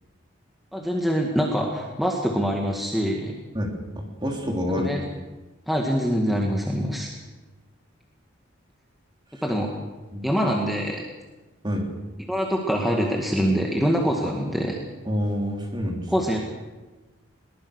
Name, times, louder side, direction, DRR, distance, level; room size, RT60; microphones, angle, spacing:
voice 1, 0.7-3.3 4.8-5.0 5.7-7.1 9.4-9.7 10.2-11.0 12.3-14.8 16.1-16.4, equal, ahead, -1 dB, 2.0 m, -24 dB
voice 2, 4.2-4.9 10.1-10.3 11.6-11.9 15.0-16.1, equal, 20° right, 1 dB, 3.3 m, -27 dB
21.5 x 20.0 x 6.5 m, 1.2 s
head